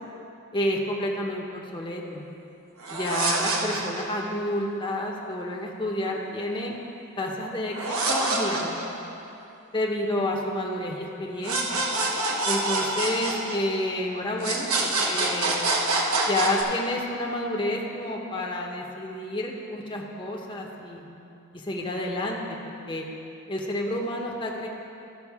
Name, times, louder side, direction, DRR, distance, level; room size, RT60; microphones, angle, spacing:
voice 1, 0.5-2.2 2.9-6.7 7.2-8.9 9.7-11.8 12.4-15.7 16.3-21.1 21.5-22.4 22.7-23.0 23.5-24.7, left 1 dB, 25° left, -1 dB, 0.9 m, -30 dB
sound 1, 2.8-4.2 7.7-9.3 11.4-14.0 14.4-16.6, right 2 dB, 85° right, 1.2 m, -26 dB
13.5 x 6.1 x 4.8 m, 2.8 s
head